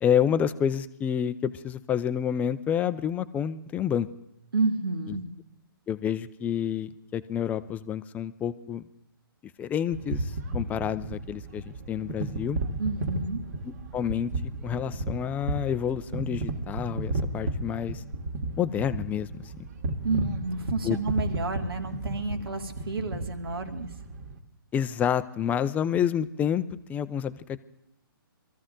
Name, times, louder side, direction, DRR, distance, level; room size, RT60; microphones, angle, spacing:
voice 1, 0.0-4.1 5.1-5.2 5.9-8.8 9.6-12.6 13.9-14.3 14.6-18.0 18.6-19.3 20.8-21.0 24.7-27.6, left 9 dB, 15° left, 12 dB, 0.6 m, -28 dB
voice 2, 4.5-5.2 12.8-13.4 20.0-23.9, right 3 dB, 75° right, 6 dB, 2.3 m, -30 dB
sound 1, 9.9-24.4, right 2 dB, 50° right, 2.1 m, -34 dB
25.0 x 14.5 x 3.8 m, 0.77 s
hypercardioid pair, 145°, 12 cm